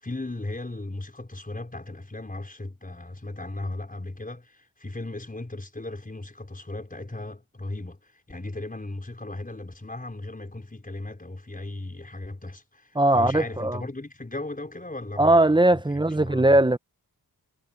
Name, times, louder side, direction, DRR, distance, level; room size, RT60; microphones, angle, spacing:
voice 1, 0.0-16.6, left 2 dB, 25° left, 5.2 m, -37 dB
voice 2, 13.0-13.8 15.2-16.8, right 1 dB, 15° right, 0.9 m, -19 dB
cardioid pair, 60°, 36 cm